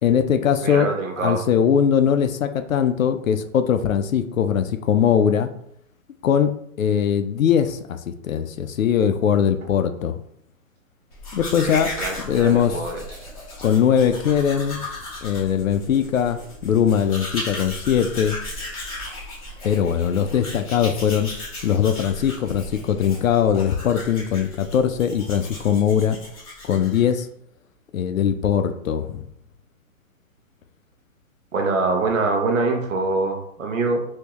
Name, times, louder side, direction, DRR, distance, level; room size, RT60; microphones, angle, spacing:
voice 1, 0.0-0.9 1.2-5.5 6.2-6.5 6.8-10.2 11.3-11.9 12.2-12.8 13.6-14.8 15.2-18.4 19.6-21.3 21.6-26.2 26.7-27.3 27.9-29.2, left 8 dB, 65° left, 9 dB, 0.5 m, -21 dB
voice 2, 0.6-1.4 11.6-13.0 31.5-34.0, right 3 dB, 65° right, 3 dB, 0.9 m, -24 dB
Domestic sounds home sounds, 11.1-27.2, left 1 dB, 25° left, 1.0 m, -36 dB
3.5 x 2.7 x 3.0 m, 0.70 s
hypercardioid pair, 180°, 43 cm